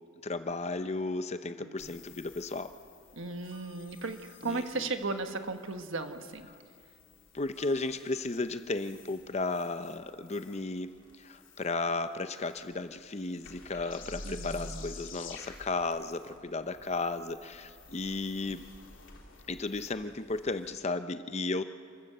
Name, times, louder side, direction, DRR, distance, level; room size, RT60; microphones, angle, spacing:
voice 1, 0.2-2.7 4.4-4.9 7.3-10.9 11.2-18.7 19.5-21.6, left 3 dB, 30° left, 10 dB, 0.7 m, -34 dB
voice 2, 1.6-1.9 3.2-6.5 14.2-14.9, right 3 dB, 70° right, 7 dB, 1.4 m, -36 dB
sound 1, 1.8-20.7, left 3 dB, 65° left, 3.1 m, -51 dB
28.0 x 15.0 x 6.8 m, 2.3 s
head